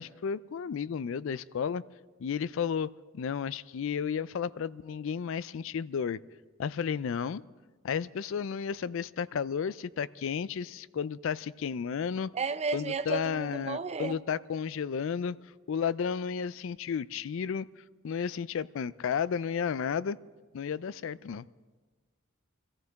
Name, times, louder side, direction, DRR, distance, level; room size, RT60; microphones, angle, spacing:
voice 1, 0.0-1.8 2.2-6.2 6.6-7.4 7.8-12.3 12.7-15.4 15.7-17.7 18.0-20.2 20.5-21.5, left 7 dB, 70° left, 0.4 m, -32 dB
voice 2, 12.3-14.2, right 4 dB, 30° right, 0.5 m, -33 dB
26.0 x 14.5 x 3.5 m
head